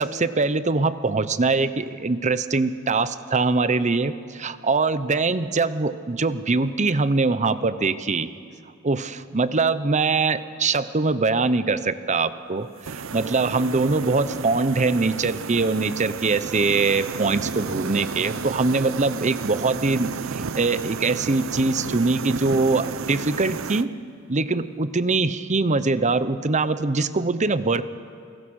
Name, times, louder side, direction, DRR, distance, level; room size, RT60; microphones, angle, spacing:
voice 1, 0.0-8.3 8.8-23.9 24.3-27.9, right 3 dB, 35° right, 13 dB, 0.8 m, -23 dB
sound 1, 12.8-23.9, right 5 dB, 65° right, 0.7 m, -32 dB
29.0 x 21.0 x 6.4 m, 2.4 s
head